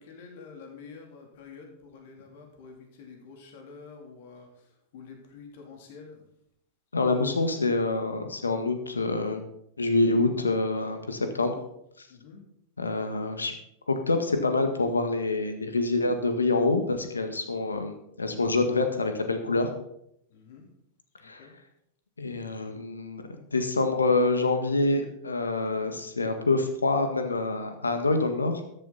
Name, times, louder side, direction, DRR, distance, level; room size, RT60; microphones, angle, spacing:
voice 1, 0.0-6.2 12.1-12.4 20.3-20.7 21.2-21.5, left 5 dB, 55° left, 1 dB, 3.4 m, -48 dB
voice 2, 6.9-9.4 9.8-11.5 12.0-12.1 12.8-13.5 13.9-19.7 21.2-21.5 22.2-28.6, left 3 dB, 85° left, 7 dB, 1.7 m, -26 dB
13.5 x 10.5 x 4.2 m, 0.75 s
figure-of-eight pair, 95°, 0 cm